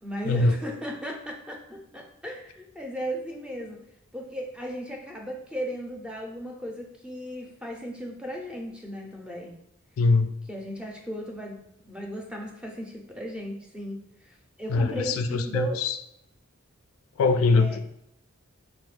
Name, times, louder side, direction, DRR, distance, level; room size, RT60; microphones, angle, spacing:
voice 1, 0.0-3.8 4.1-9.5 10.5-15.8 17.5-17.9, equal, 5° right, 0 dB, 0.5 m, -36 dB
voice 2, 10.0-10.3 14.7-16.0 17.2-17.9, left 3 dB, 85° left, 8 dB, 0.3 m, -22 dB
4.1 x 2.2 x 3.1 m, 0.77 s
head